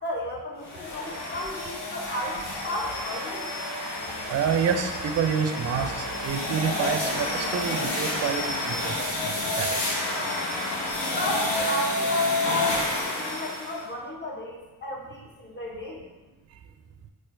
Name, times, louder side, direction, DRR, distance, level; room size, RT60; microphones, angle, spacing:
voice 1, 0.0-3.6 11.1-16.0, left 1 dB, 25° left, -3 dB, 0.9 m, -34 dB
sound 1, 0.6-13.8, left 2 dB, 85° left, 0.8 m, -29 dB
voice 2, 4.3-10.0 11.1-11.2, right 7 dB, 40° right, 7 dB, 0.4 m, -28 dB
4.1 x 2.3 x 2.6 m, 1.2 s
cardioid pair, 55°, 40 cm